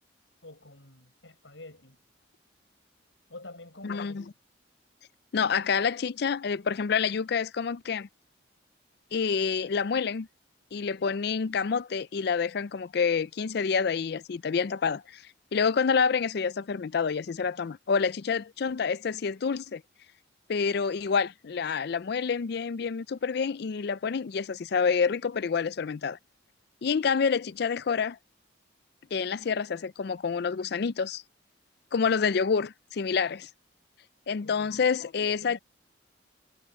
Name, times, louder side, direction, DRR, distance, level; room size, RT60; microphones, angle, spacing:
voice 1, 0.4-2.0 3.3-4.3 34.4-34.8 35.4-35.6, left 2 dB, 75° left, 6.9 m, -47 dB
voice 2, 3.8-4.2 5.3-8.1 9.1-10.3 10.7-15.2 15.5-19.8 20.5-26.2 26.8-28.2 29.1-31.2 31.9-33.5 34.3-35.6, left 5 dB, 55° left, 0.4 m, -28 dB
head